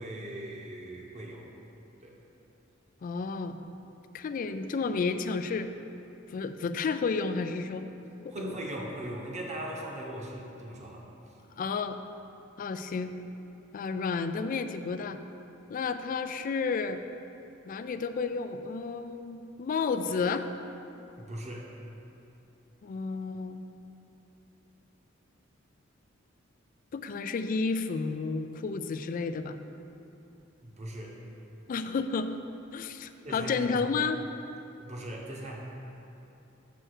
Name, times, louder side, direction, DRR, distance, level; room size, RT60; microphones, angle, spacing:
voice 1, 0.0-1.5 2.0-2.2 8.3-11.1 21.2-21.7 30.6-31.2 33.2-33.8 34.8-35.7, right 1 dB, 35° right, -1 dB, 0.9 m, -39 dB
voice 2, 3.0-3.6 4.1-5.7 6.3-8.0 8.2-8.6 11.6-12.0 12.6-13.1 13.7-15.2 15.7-17.0 17.7-20.5 22.8-23.6 26.9-29.6 31.7-32.4 32.7-34.2, left 4 dB, 40° left, 10 dB, 0.3 m, -31 dB
6.2 x 4.4 x 6.4 m, 2.9 s
head